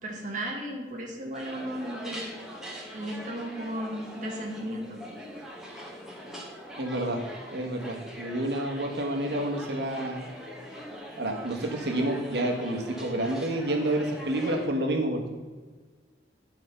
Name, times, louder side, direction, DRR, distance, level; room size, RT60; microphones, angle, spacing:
voice 1, 0.0-2.3 2.9-5.0, right 1 dB, 45° right, 0 dB, 1.4 m, -35 dB
sound 1, 1.3-14.7, equal, 5° right, 1.4 m, -42 dB
voice 2, 6.8-7.2 7.5-10.2 11.2-15.3, right 1 dB, 65° right, 2 dB, 1.5 m, -29 dB
11.0 x 4.7 x 5.5 m, 1.4 s
head